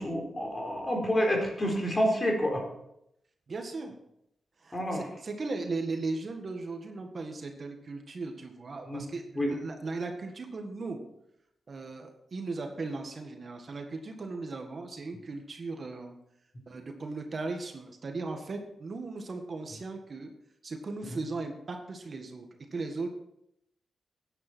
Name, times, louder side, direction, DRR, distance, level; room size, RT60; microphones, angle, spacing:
voice 1, 0.0-2.6 4.7-5.0 8.9-9.0 9.4-9.5, equal, 30° left, 0 dB, 4.3 m, -28 dB
voice 2, 3.5-4.0 4.6-11.0 11.7-16.2 16.7-20.3 20.6-22.5 22.7-23.1, right 3 dB, 50° right, 4 dB, 1.7 m, -37 dB
13.5 x 9.9 x 4.4 m, 0.79 s
cardioid pair, 85°, 0 cm